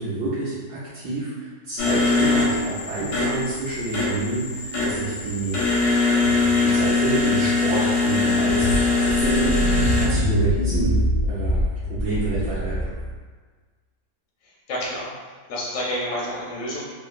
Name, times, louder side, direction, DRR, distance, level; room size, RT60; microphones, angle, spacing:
voice 1, 0.0-5.9 6.2-9.2 9.5-9.7 10.0-11.0 11.3-12.9, right 2 dB, 70° right, -12 dB, 1.2 m, -29 dB
sound 1, 1.8-10.1, left 3 dB, 85° left, 1.4 m, -22 dB
sound 2, 8.5-13.2, equal, 40° right, 0.7 m, -24 dB
voice 2, 14.7-15.1 15.5-16.8, left 1 dB, 60° left, -5 dB, 0.8 m, -28 dB
3.5 x 2.0 x 2.4 m, 1.5 s
omnidirectional pair, 1.9 m